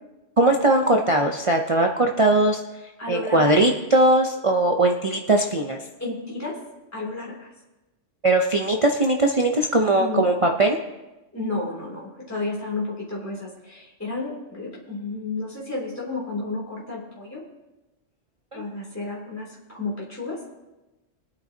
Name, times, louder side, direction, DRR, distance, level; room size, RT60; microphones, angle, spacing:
voice 1, 0.4-2.6 3.1-5.8 8.2-10.8 18.5-18.6, right 2 dB, 30° right, 2 dB, 0.7 m, -20 dB
voice 2, 3.0-3.5 6.0-6.6 6.9-7.5 9.9-10.3 11.3-17.4 18.5-20.4, left 3 dB, 10° left, -5 dB, 3.0 m, -32 dB
23.5 x 9.3 x 2.8 m, 1.1 s
omnidirectional pair, 1.3 m